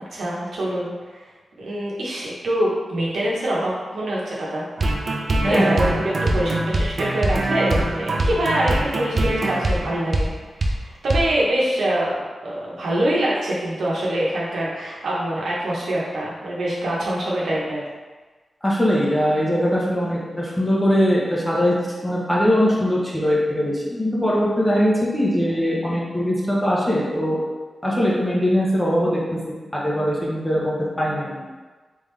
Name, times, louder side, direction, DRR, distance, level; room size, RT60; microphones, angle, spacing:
voice 1, 0.1-0.9 1.6-4.6 5.4-10.3 10.6-12.1 12.4-17.8, right 1 dB, 85° right, -6 dB, 1.0 m, -24 dB
sound 1, 4.8-10.3 10.6-10.8 11.1-11.2, right 2 dB, 55° right, 0.5 m, -23 dB
voice 2, 5.4-5.8 18.6-21.7 22.0-27.4 27.8-31.5, equal, 10° left, -5 dB, 1.1 m, -21 dB
3.6 x 3.4 x 3.3 m, 1.3 s
cardioid pair, 80°, 0 cm